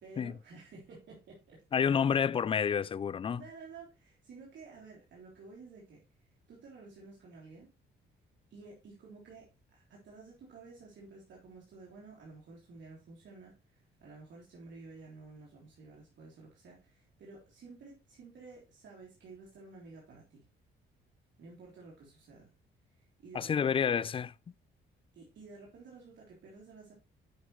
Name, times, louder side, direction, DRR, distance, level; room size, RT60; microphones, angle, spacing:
voice 1, 0.0-1.9 3.3-6.0 6.5-7.7 8.5-20.4 21.4-22.5 22.9-23.7 25.1-26.9, right 4 dB, 65° right, 3.4 m, -52 dB
voice 2, 1.7-3.4 23.3-24.3, left 7 dB, 30° left, 0.3 m, -29 dB
10.5 x 5.8 x 3.1 m
cardioid pair, 90°, 20 cm